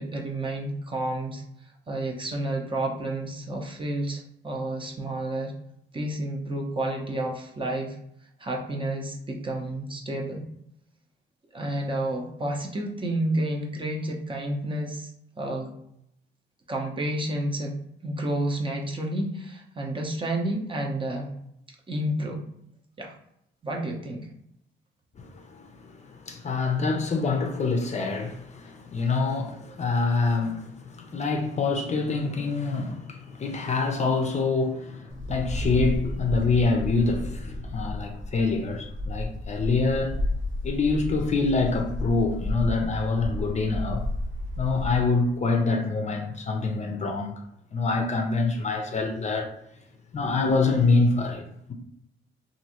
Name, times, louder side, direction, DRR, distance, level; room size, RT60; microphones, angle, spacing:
voice 1, 0.0-1.4 1.9-5.5 5.9-8.0 8.4-10.4 11.5-15.1 15.4-15.7 16.7-17.7 18.0-21.3 21.9-22.4 23.0-23.1 23.6-24.3, right 1 dB, 25° right, 0.7 m, -30 dB
voice 2, 25.2-40.2 40.6-44.0 44.6-47.3 47.7-49.5 50.1-51.7, left 3 dB, 35° left, 0.5 m, -26 dB
Wind, 35.1-45.1, left 1 dB, 75° right, 1.0 m, -32 dB
3.0 x 2.6 x 2.9 m
cardioid pair, 90°, 20 cm